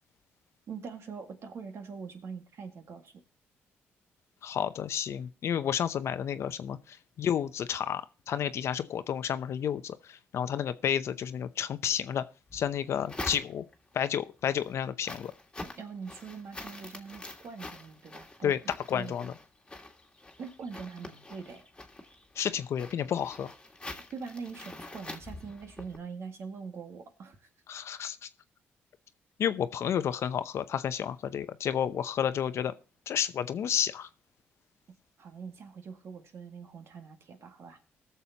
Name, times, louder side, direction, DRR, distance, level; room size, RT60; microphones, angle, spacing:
voice 1, 0.7-3.1 15.6-18.5 18.9-19.1 20.4-21.6 24.1-27.5 35.2-37.8, right 5 dB, 60° right, 1.8 m, -43 dB
voice 2, 4.4-12.2 12.5-13.6 13.9-15.3 18.4-18.6 18.9-19.3 22.4-23.5 27.7-28.3 29.4-32.7 33.1-34.1, left 9 dB, 65° left, 0.7 m, -31 dB
sound 1, 12.5-13.9 14.4-26.0, left 2 dB, 15° left, 1.8 m, -45 dB
20.5 x 6.9 x 2.9 m
supercardioid pair, 65°, 5 cm